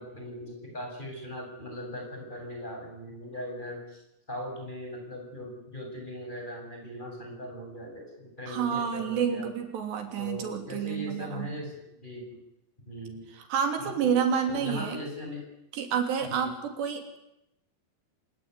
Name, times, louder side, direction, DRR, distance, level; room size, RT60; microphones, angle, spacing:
voice 1, 0.0-4.0 4.3-9.5 10.2-12.4 12.8-13.2 13.8-14.1 14.5-15.4 16.3-16.5, equal, 10° left, 1 dB, 8.0 m, -39 dB
voice 2, 8.5-11.5 13.3-15.0 15.7-17.2, right 7 dB, 90° right, 5 dB, 5.2 m, -29 dB
27.0 x 18.5 x 9.8 m, 0.85 s
omnidirectional pair, 4.8 m